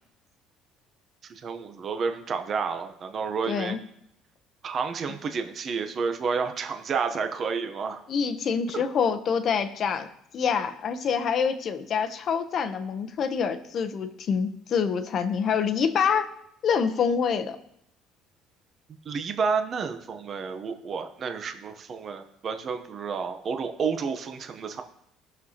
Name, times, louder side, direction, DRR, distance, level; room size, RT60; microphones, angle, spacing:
voice 1, 1.2-3.8 4.6-8.0 8.7-8.8 19.1-24.8, right 5 dB, 35° right, 6 dB, 0.7 m, -30 dB
voice 2, 3.5-3.8 8.1-10.1 10.3-16.3 16.6-17.6, left 6 dB, 40° left, 9 dB, 0.7 m, -26 dB
18.0 x 6.4 x 2.8 m, 0.76 s
cardioid pair, 155°, 0 cm